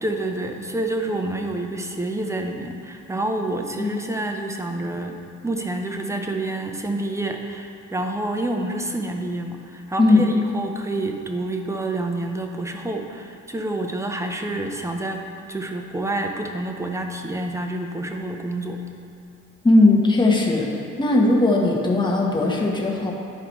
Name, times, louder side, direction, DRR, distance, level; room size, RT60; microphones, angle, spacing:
voice 1, 0.0-5.2 5.4-15.2 15.5-18.8, right 2 dB, 10° right, 3 dB, 0.7 m, -28 dB
voice 2, 19.6-20.7 21.0-23.1, left 2 dB, 15° left, -2 dB, 1.1 m, -18 dB
11.0 x 4.8 x 3.1 m, 2.5 s
cardioid pair, 90°, 30 cm